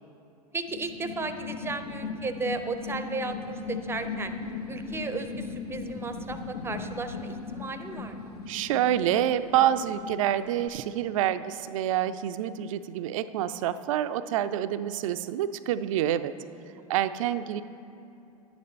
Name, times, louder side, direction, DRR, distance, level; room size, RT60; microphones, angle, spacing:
voice 1, 0.5-4.3 4.7-8.3 16.7-16.9, right 3 dB, 10° right, 8 dB, 0.6 m, -35 dB
sound 1, 0.7-10.7, left 4 dB, 70° left, 1.5 m, -38 dB
voice 2, 8.5-16.3 16.9-17.6, right 11 dB, 60° right, 13 dB, 0.4 m, -27 dB
10.5 x 8.7 x 4.2 m, 2.9 s
figure-of-eight pair, 90°, 20 cm